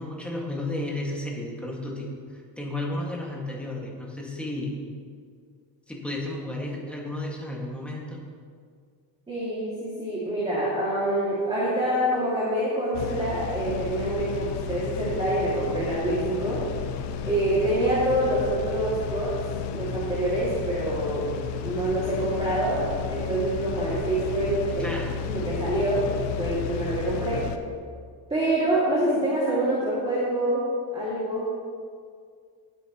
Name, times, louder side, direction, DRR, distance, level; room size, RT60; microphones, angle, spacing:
voice 1, 0.0-4.8 5.9-8.2 24.7-25.1, left 1 dB, 5° left, -3 dB, 1.9 m, -33 dB
voice 2, 9.3-16.6 17.2-19.3 19.7-21.3 21.6-24.9 25.2-27.4 28.3-30.6 30.9-31.5, right 1 dB, 10° right, -9 dB, 2.5 m, -26 dB
sound 1, 12.9-27.6, left 8 dB, 65° left, 0.9 m, -33 dB
18.0 x 8.8 x 3.1 m, 2.1 s
cardioid pair, 150°, 45 cm